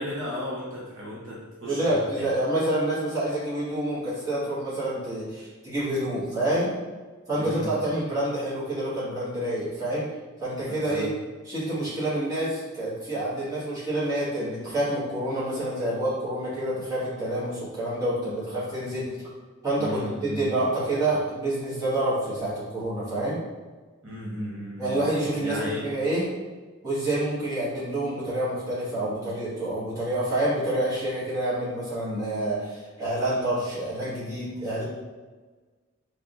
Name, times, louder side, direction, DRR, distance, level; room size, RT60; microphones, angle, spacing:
voice 1, 0.0-2.3 7.4-7.8 10.7-11.1 19.8-20.5 24.0-25.0 25.4-25.8, left 1 dB, 60° right, -7 dB, 0.9 m, -35 dB
voice 2, 1.7-6.7 7.3-10.1 10.4-11.1 11.4-19.1 19.6-20.0 20.3-23.4 24.8-26.3 26.8-34.8, right 1 dB, 15° right, -11 dB, 1.5 m, -28 dB
3.7 x 3.3 x 2.5 m, 1.4 s
head